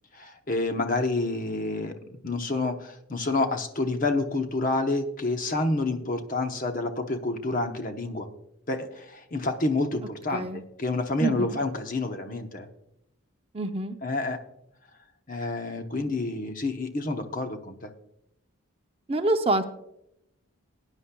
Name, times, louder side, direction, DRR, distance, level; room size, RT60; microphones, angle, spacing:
voice 1, 0.1-1.9 2.2-8.3 8.7-12.7 14.0-14.4 15.3-17.9, left 2 dB, 40° left, 6 dB, 0.9 m, -28 dB
voice 2, 10.3-10.6 11.2-11.6 13.5-14.0 19.1-19.6, right 2 dB, 25° right, 6 dB, 0.6 m, -26 dB
18.5 x 9.9 x 2.3 m, 0.80 s
head